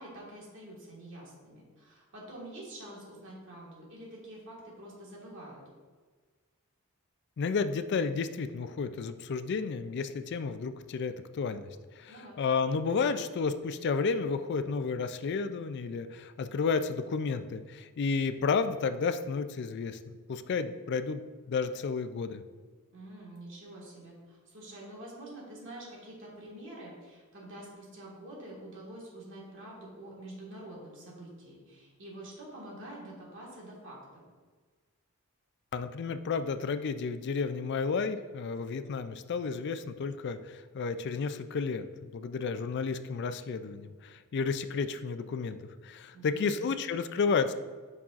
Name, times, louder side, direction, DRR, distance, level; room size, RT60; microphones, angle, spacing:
voice 1, 0.0-5.6 12.1-12.4 22.9-34.2 46.1-46.7, right 1 dB, 60° right, -4 dB, 1.7 m, -47 dB
voice 2, 7.4-11.7 12.0-21.2 21.5-22.4 35.7-47.5, left 5 dB, 55° left, 10 dB, 0.3 m, -32 dB
7.2 x 5.4 x 2.5 m, 1.4 s
head